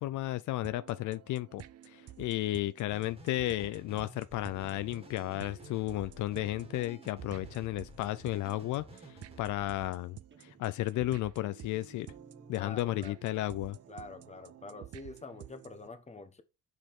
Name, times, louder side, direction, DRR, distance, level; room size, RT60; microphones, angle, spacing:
voice 1, 0.0-12.1 12.5-13.8, left 15 dB, 75° left, 0.4 m, -34 dB
sound 1, 0.6-15.9, right 12 dB, 55° right, 0.5 m, -51 dB
sound 2, 2.9-9.7, equal, 20° right, 2.0 m, -52 dB
Guitar, 10.0-10.1 10.3-13.2, right 4 dB, 40° right, 1.2 m, -59 dB
voice 2, 12.5-13.1 13.9-16.4, left 3 dB, 20° left, 1.2 m, -46 dB
6.4 x 5.0 x 3.6 m
cardioid pair, 90°, 30 cm